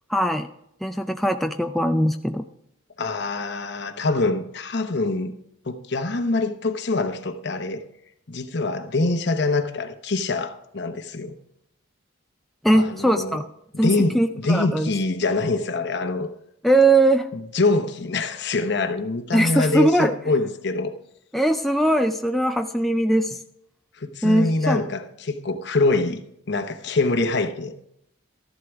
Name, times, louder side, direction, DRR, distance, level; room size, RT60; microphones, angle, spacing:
voice 1, 0.1-0.5 0.8-2.5 12.6-13.5 13.8-14.9 16.6-17.3 19.3-20.1 21.3-23.4 24.2-24.8, right 1 dB, ahead, 0.3 m, -20 dB
voice 2, 3.0-5.3 5.6-7.8 8.3-11.3 12.7-13.4 13.7-16.3 17.3-20.9 24.0-26.2 26.5-27.7, left 3 dB, 55° left, 0.9 m, -24 dB
13.5 x 11.0 x 3.5 m
head